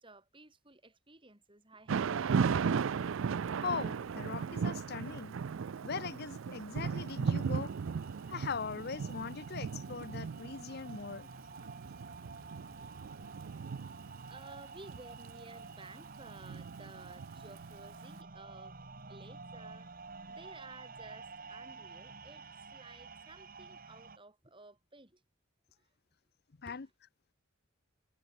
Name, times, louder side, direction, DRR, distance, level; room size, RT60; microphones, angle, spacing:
voice 1, 0.0-2.5 4.1-4.2 11.8-13.1 14.2-18.8 19.1-19.9 20.3-25.2 25.8-25.9 26.6-26.8, right 2 dB, 25° right, 4.5 m, -55 dB
Thunder / Rain, 1.9-17.9, right 6 dB, 65° right, 0.4 m, -36 dB
voice 2, 3.6-5.3 5.8-7.7 8.3-11.3 26.6-26.9, left 5 dB, 45° left, 0.6 m, -40 dB
sound 1, 7.0-24.2, right 4 dB, 40° right, 1.9 m, -50 dB
head